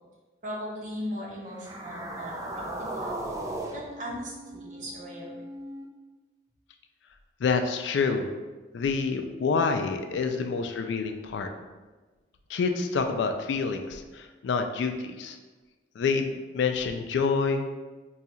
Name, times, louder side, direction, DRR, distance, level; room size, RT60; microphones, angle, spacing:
voice 1, 0.4-3.1 3.7-5.4, equal, 40° right, -4 dB, 0.8 m, -38 dB
sound 1, 1.5-5.9, right 1 dB, 15° right, 0.3 m, -37 dB
voice 2, 7.4-8.3 8.7-11.5 12.5-15.4 16.0-17.6, left 5 dB, 75° left, 6 dB, 0.3 m, -27 dB
2.7 x 2.3 x 4.2 m, 1.3 s
head